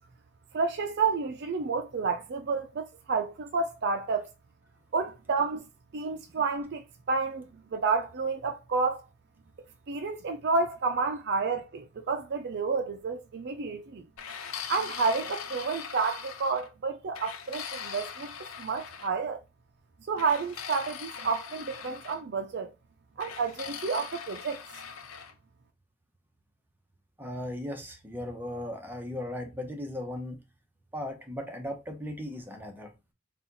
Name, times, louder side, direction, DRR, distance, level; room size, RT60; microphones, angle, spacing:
voice 1, 0.5-4.3 4.9-5.6 5.9-9.0 9.9-14.0 14.7-19.4 20.1-22.7 23.2-24.6, right 4 dB, 55° right, 0.4 m, -30 dB
sound 1, 14.2-16.7 17.1-19.1 20.2-22.2 23.2-25.3, left 7 dB, 90° left, 0.6 m, -41 dB
voice 2, 27.2-30.4 30.9-32.9, left 1 dB, 10° right, 0.8 m, -37 dB
4.2 x 2.3 x 4.0 m
head